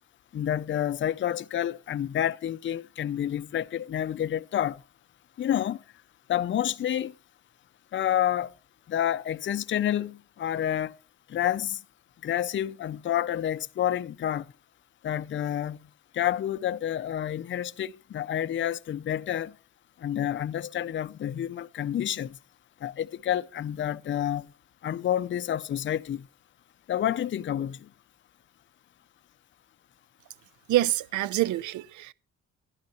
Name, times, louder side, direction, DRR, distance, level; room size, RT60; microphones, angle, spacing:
voice 1, 0.3-4.8 5.4-5.8 6.3-7.1 7.9-8.5 8.9-11.0 11.3-11.8 12.2-14.5 15.0-15.8 16.1-19.5 20.0-22.4 22.8-24.5 24.8-26.3 26.9-27.9, left 11 dB, 40° left, 0.5 m, -29 dB
voice 2, 30.7-32.1, right 15 dB, 75° right, 0.5 m, -26 dB
11.5 x 10.5 x 4.1 m
cardioid pair, 90°, 30 cm